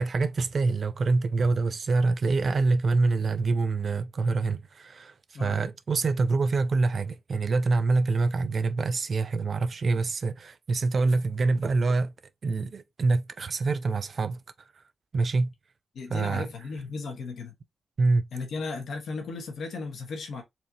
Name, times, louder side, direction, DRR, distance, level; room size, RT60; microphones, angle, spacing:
voice 1, 0.0-12.1 12.4-14.4 15.1-15.5 16.1-16.5 18.0-18.3, right 3 dB, 60° right, 0.5 m, -25 dB
voice 2, 15.9-17.5 18.3-20.4, left 4 dB, 80° left, 1.4 m, -35 dB
4.3 x 2.7 x 2.9 m
cardioid pair, 65°, 0 cm